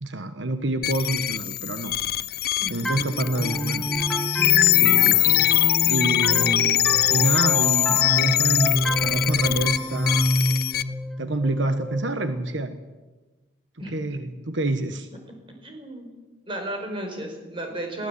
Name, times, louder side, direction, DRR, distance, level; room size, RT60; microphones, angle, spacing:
voice 1, 0.0-2.0 2.7-3.9 4.7-5.5 5.8-10.3 11.2-12.8 13.9-15.1, right 2 dB, 80° right, 9 dB, 1.3 m, -27 dB
sound 1, 0.8-10.8, left 14 dB, 55° left, 0.7 m, -22 dB
voice 2, 2.6-2.9 13.8-13.9 15.6-16.1 16.5-18.1, right 1 dB, 30° right, 3 dB, 4.9 m, -33 dB
sound 2, 2.9-12.4, equal, 5° left, 1.6 m, -28 dB
22.0 x 16.0 x 8.3 m, 1.2 s
head